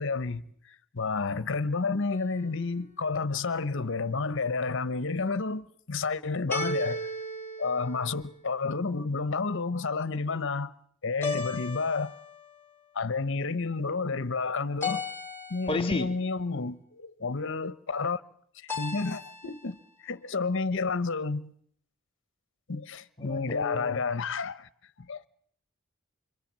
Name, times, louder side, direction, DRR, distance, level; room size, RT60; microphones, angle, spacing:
voice 1, 0.0-7.1 7.6-10.7 11.0-12.1 12.9-15.0 15.5-18.2 18.6-21.5 22.7-24.7 25.0-25.3, left 4 dB, 65° left, 1.0 m, -30 dB
sound 1, 2.1-2.8 6.5-8.5 11.2-12.6 14.8-16.0 18.7-19.7, left 2 dB, 10° left, 2.7 m, -36 dB
voice 2, 15.7-16.1 23.2-24.0, left 2 dB, 25° left, 1.9 m, -32 dB
28.5 x 23.0 x 7.5 m
head